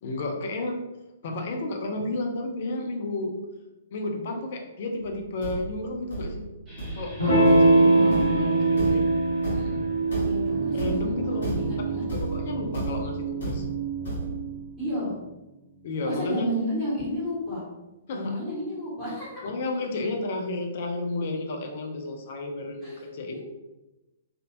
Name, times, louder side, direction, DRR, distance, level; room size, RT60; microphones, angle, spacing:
voice 1, 0.0-0.8 1.2-3.3 3.9-6.4 6.9-9.1 9.5-9.9 10.7-11.5 11.9-13.7 15.8-16.7 18.1-18.4 19.4-23.4, left 2 dB, 50° left, 2 dB, 0.6 m, -32 dB
Thump thud, 5.0-14.6, right 1 dB, 65° left, 1.1 m, -34 dB
sound 1, 6.7-16.0, right 6 dB, 25° right, 1.3 m, -37 dB
Electric guitar / Strum, 7.2-12.3, right 2 dB, 90° right, 1.3 m, -22 dB
voice 2, 7.7-8.3 10.2-11.0 11.3-12.0 14.8-15.1 16.0-17.6 18.1-19.4 22.8-23.1 23.3-23.4, equal, ahead, -14 dB, 1.5 m, -31 dB
3.5 x 2.7 x 2.6 m, 1.0 s
figure-of-eight pair, 115°, 0 cm